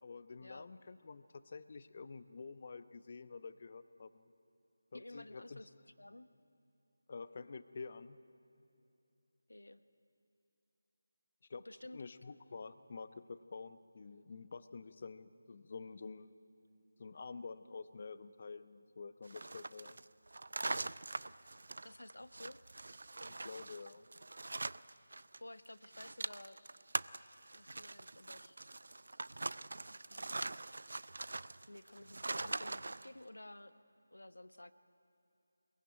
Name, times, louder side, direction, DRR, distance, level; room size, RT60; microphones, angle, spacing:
voice 1, 0.0-4.2 4.9-5.6 7.1-8.2 11.5-11.7 11.9-16.3 17.0-20.0 23.3-24.0, left 4 dB, 40° left, 13 dB, 0.8 m, -49 dB
voice 2, 4.9-5.7 6.0-6.3 9.5-9.8 11.6-12.0 21.8-22.6 25.4-26.6 27.5-28.6 29.9-30.5 31.7-33.7 34.1-34.7, left 1 dB, 80° left, 12 dB, 1.1 m, -53 dB
sound 1, 19.2-25.4 25.6-33.1, right 2 dB, 60° right, 0.5 m, -43 dB
22.5 x 22.0 x 9.1 m, 2.9 s
figure-of-eight pair, 160°, 0 cm